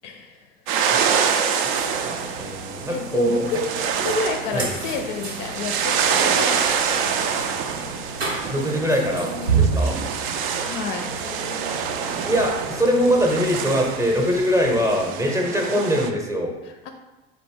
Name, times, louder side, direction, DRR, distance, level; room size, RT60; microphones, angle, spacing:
voice 1, 0.0-0.5 2.9-3.6 3.9-6.7 10.7-11.1 16.6-16.9, left 4 dB, 50° left, 4 dB, 0.5 m, -30 dB
sound 1, 0.7-16.1, right 7 dB, 45° right, 0.4 m, -26 dB
sound 2, 1.7-15.1, right 4 dB, 85° right, 0.7 m, -31 dB
voice 2, 2.4-3.5 4.5-4.7 8.5-10.0 12.2-16.5, equal, 10° right, 0 dB, 0.7 m, -22 dB
4.0 x 2.6 x 3.6 m, 1.1 s
figure-of-eight pair, 70°, 31 cm